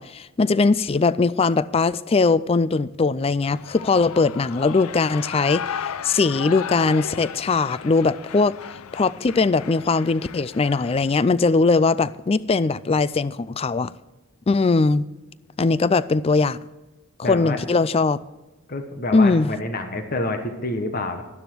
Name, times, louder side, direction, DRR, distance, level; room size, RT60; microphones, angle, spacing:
voice 1, 0.0-5.8 6.0-8.6 8.9-13.9 14.5-15.1 15.6-16.6 17.2-18.2 19.1-19.5, left 4 dB, 25° left, 0.3 m, -20 dB
Shout / Cheering, 3.4-11.2, left 8 dB, 85° left, 0.5 m, -35 dB
voice 2, 17.2-17.6 18.7-21.2, left 2 dB, 40° left, 1.3 m, -28 dB
12.0 x 12.0 x 4.5 m
head